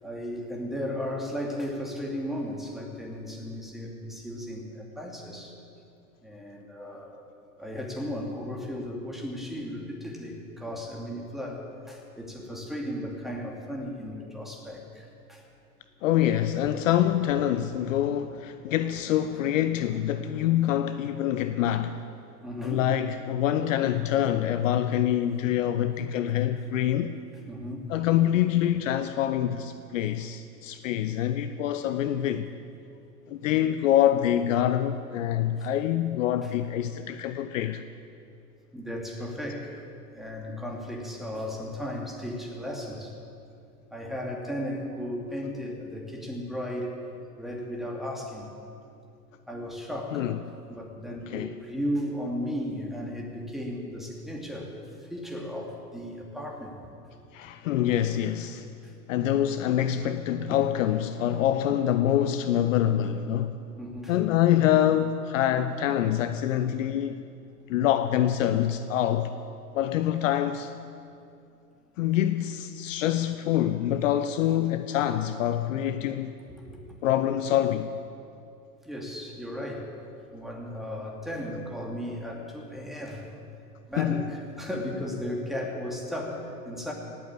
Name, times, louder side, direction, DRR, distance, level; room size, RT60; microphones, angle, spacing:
voice 1, 0.0-5.5 6.2-7.2 7.6-15.4 22.4-22.9 27.5-27.9 35.6-35.7 36.4-36.5 38.7-39.8 40.1-43.2 43.9-47.0 47.4-48.5 49.5-50.3 50.7-54.7 55.0-56.7 58.8-58.9 63.8-64.1 76.6-77.0 78.8-79.9 80.3-83.3 83.9-86.9, equal, ahead, 2.7 m, -35 dB
voice 2, 16.0-22.0 22.6-27.1 27.9-32.5 33.3-37.8 50.1-50.4 51.3-51.5 57.3-58.7 59.1-63.5 64.1-67.2 67.7-69.3 69.7-70.7 72.0-76.3 77.0-77.9 84.0-84.2, left 11 dB, 55° left, 0.8 m, -25 dB
17.5 x 8.4 x 8.6 m
figure-of-eight pair, 95°, 48 cm